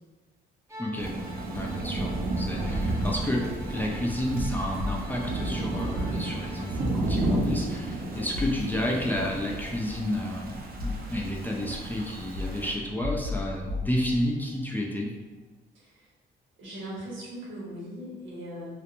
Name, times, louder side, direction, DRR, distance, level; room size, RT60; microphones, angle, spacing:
Bowed string instrument, 0.7-6.9, right 1 dB, 15° right, 0.7 m, -47 dB
voice 1, 0.8-1.2 1.5-15.1, left 1 dB, 10° left, -2 dB, 0.3 m, -31 dB
Thunder / Rain, 1.0-12.8, right 2 dB, 50° right, 0.5 m, -32 dB
voice 2, 2.3-2.8 8.0-8.6 15.7-16.1 16.6-18.7, right 1 dB, 80° right, -6 dB, 1.1 m, -40 dB
sound 1, 4.8-5.7 8.3-9.2 10.1-11.4 12.3-14.6, left 3 dB, 70° left, 0.7 m, -35 dB
2.4 x 2.1 x 2.9 m, 1.3 s
cardioid pair, 90°, 20 cm